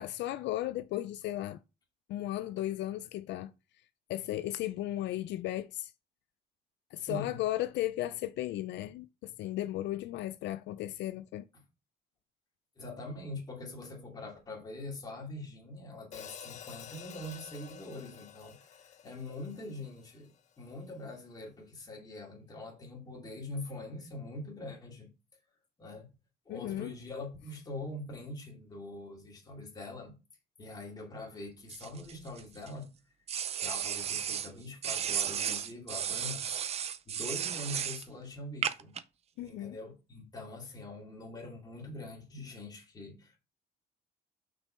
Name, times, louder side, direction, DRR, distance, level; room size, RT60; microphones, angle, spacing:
voice 1, 0.0-1.6 2.1-3.5 4.1-5.9 6.9-11.4 26.5-26.9 39.4-39.8, left 14 dB, 75° left, 0.4 m, -35 dB
voice 2, 7.0-7.4 12.8-20.3 20.6-25.1 25.8-26.1 26.5-30.1 30.6-32.9 33.6-36.8 37.0-38.9 39.4-43.4, left 2 dB, 20° left, 2.6 m, -43 dB
Hi-hat, 16.1-20.4, left 9 dB, 40° left, 0.7 m, -49 dB
sound 1, 31.7-32.7 33.3-34.5 34.8-38.0 38.6-39.0, right 8 dB, 35° right, 0.5 m, -34 dB
6.0 x 5.3 x 4.4 m
cardioid pair, 165°, 18 cm